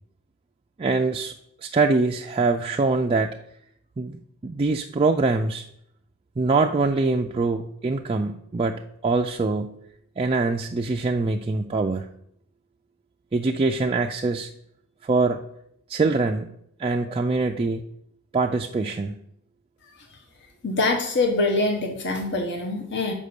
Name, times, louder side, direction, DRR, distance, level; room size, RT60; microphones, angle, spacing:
voice 1, 0.8-1.3 1.6-3.4 4.0-5.7 6.4-9.8 10.2-12.1 13.3-14.5 15.0-15.5 15.9-16.5 16.8-17.8 18.3-19.2, right 3 dB, 25° right, 2 dB, 0.3 m, -24 dB
voice 2, 20.6-23.1, left 2 dB, 55° left, 3 dB, 1.0 m, -24 dB
6.4 x 5.3 x 6.8 m, 0.73 s
head